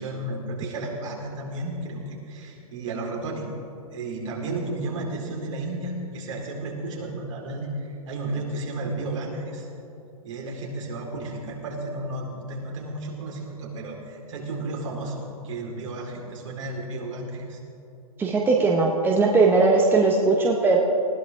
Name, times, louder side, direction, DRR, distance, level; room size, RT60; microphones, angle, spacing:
voice 1, 0.0-3.5 3.9-9.7 10.2-17.6, right 2 dB, 55° right, -1 dB, 4.4 m, -33 dB
voice 2, 18.2-20.8, right 3 dB, 10° right, 0 dB, 1.2 m, -19 dB
20.0 x 16.0 x 3.7 m, 2.6 s
hypercardioid pair, 125°, 19 cm